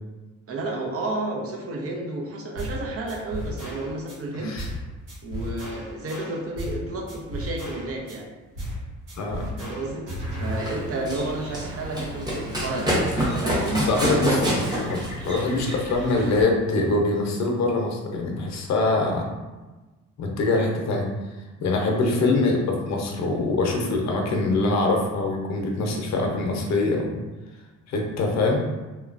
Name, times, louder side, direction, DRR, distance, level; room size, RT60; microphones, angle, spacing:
voice 1, 0.5-4.6 5.2-8.3 9.6-10.1 10.4-13.9 15.5-15.6, right 2 dB, 50° right, 0 dB, 0.6 m, -31 dB
sound 1, 2.6-2.8 3.1-4.2 4.6-4.8 5.1-6.8 7.1-8.2 8.6-8.8 9.1-10.6, equal, 85° right, 1.0 m, -33 dB
voice 2, 4.3-4.7 9.2-9.4 13.7-19.2 20.2-21.1 21.6-27.1 27.9-28.6, left 2 dB, 65° left, 1 dB, 0.6 m, -24 dB
Run, 10.4-16.4, equal, 15° right, 0.8 m, -27 dB
3.0 x 2.2 x 2.4 m, 1.2 s
cardioid pair, 90°, 30 cm